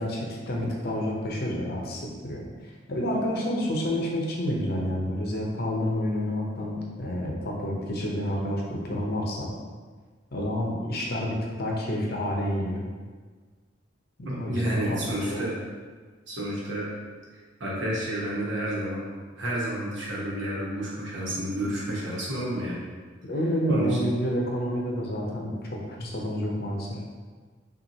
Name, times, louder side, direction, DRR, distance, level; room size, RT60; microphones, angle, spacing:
voice 1, 0.0-2.4 2.9-9.5 10.3-12.8 14.3-15.0 15.3-15.4 23.3-26.9, equal, 50° left, -2 dB, 0.7 m, -29 dB
voice 2, 14.2-15.6 16.3-16.9 17.6-19.0 19.4-22.8 23.7-24.1, right 1 dB, 65° right, -5 dB, 1.1 m, -30 dB
5.7 x 2.5 x 2.8 m, 1.5 s
head